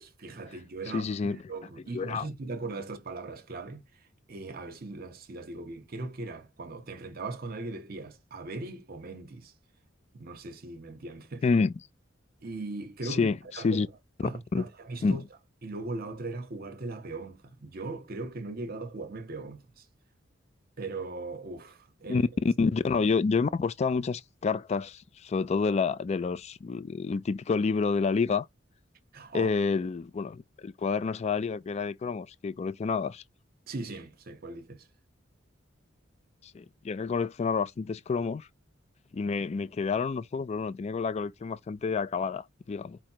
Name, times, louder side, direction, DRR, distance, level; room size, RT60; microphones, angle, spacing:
voice 1, 0.0-9.5 10.1-11.4 12.4-13.8 14.2-15.2 15.6-19.9 20.8-22.3 29.1-29.5 33.7-34.9, right 3 dB, 50° right, 0.8 m, -39 dB
voice 2, 0.9-1.4 1.9-2.3 11.4-11.7 13.1-13.4 13.6-13.9 14.5-14.6 15.0-15.2 22.1-28.5 29.3-33.2 36.4-38.5 39.1-43.0, left 4 dB, 35° left, 0.3 m, -28 dB
4.9 x 2.0 x 4.3 m
head